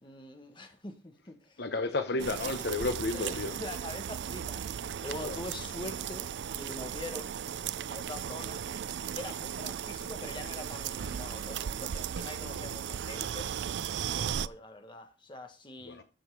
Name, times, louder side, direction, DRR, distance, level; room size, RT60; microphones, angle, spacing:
voice 1, 0.0-1.6 2.3-2.4 3.1-4.6 5.0-7.4 7.9-8.6 9.1-13.6 14.0-16.0, left 1 dB, 25° left, 1.5 m, -44 dB
voice 2, 1.6-3.5 5.2-5.4 12.4-12.7 15.9-16.0, left 3 dB, 60° left, 0.9 m, -32 dB
sound 1, 2.2-14.5, right 8 dB, 70° right, 0.4 m, -36 dB
13.0 x 5.8 x 4.8 m
head